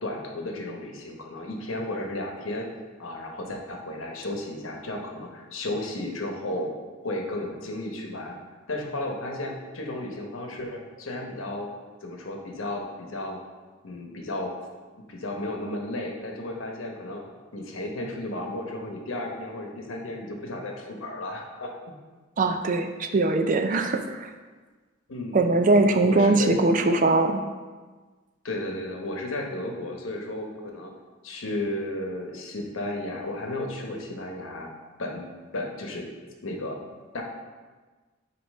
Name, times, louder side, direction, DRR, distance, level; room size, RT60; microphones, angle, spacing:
voice 1, 0.0-2.7 3.0-6.7 7.0-8.3 8.7-11.7 12.0-13.4 13.8-14.5 15.1-21.7 25.1-25.5 26.0-26.6 28.4-30.9 31.2-34.7 35.0-35.2 35.5-36.1 36.4-36.8 37.1-37.2, left 1 dB, 85° left, 1 dB, 0.9 m, -33 dB
voice 2, 22.4-24.3 25.3-27.4, right 2 dB, 40° right, 6 dB, 0.4 m, -21 dB
8.2 x 2.9 x 4.1 m, 1.4 s
head